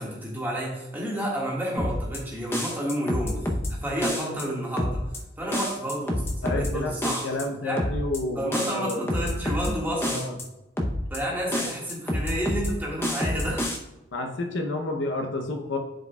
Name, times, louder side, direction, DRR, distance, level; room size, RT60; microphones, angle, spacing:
voice 1, 0.0-5.0 5.4-7.3 7.6-7.8 8.3-10.3 11.1-13.7, equal, 10° right, -5 dB, 1.6 m, -30 dB
sound 1, 1.8-2.2 2.5-3.7 4.0-4.4 4.8-5.2 5.5-6.7 7.0-7.4 7.8-8.2 8.5-9.7 10.0-10.4 10.8-11.2 11.5-12.7 13.0-13.8, left 1 dB, 10° left, 0.6 m, -28 dB
voice 2, 6.4-9.1 10.1-10.3 11.5-11.7 14.1-15.8, left 2 dB, 70° left, 4 dB, 0.7 m, -30 dB
11.5 x 4.8 x 2.3 m, 0.96 s
head